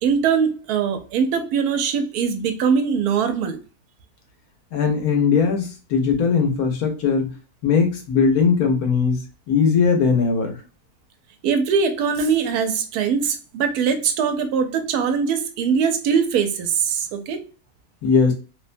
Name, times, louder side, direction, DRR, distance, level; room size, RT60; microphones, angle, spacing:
voice 1, 0.0-3.6 11.4-17.5, right 6 dB, 90° right, 1.1 m, -22 dB
voice 2, 4.7-7.3 7.6-10.6 18.0-18.3, left 5 dB, 75° left, 1.2 m, -19 dB
2.9 x 2.1 x 2.5 m
omnidirectional pair, 1.6 m